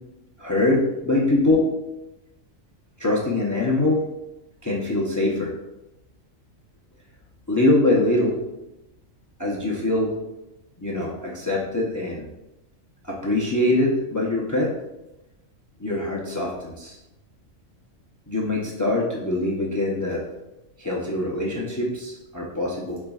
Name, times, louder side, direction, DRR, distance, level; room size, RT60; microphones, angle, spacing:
voice 1, 0.4-1.7 3.0-4.0 4.6-5.5 7.5-8.4 9.4-10.1 10.8-12.3 13.0-14.7 15.8-17.0 18.3-20.3 20.8-23.0, left 2 dB, 30° left, -3 dB, 0.3 m, -23 dB
5.1 x 4.2 x 2.3 m, 0.96 s
omnidirectional pair, 1.4 m